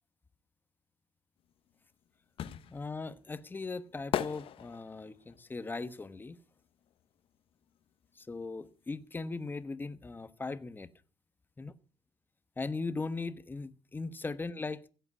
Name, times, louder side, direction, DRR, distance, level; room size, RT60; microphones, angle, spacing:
sound 1, 1.5-7.4 7.6-9.2 9.5-9.6, left 10 dB, 60° left, 1.1 m, -40 dB
voice 1, 2.7-6.4 8.2-10.9 11.6-11.7 12.6-14.9, left 3 dB, 20° left, 1.1 m, -39 dB
16.0 x 8.0 x 7.1 m
cardioid pair, 110°, 11 cm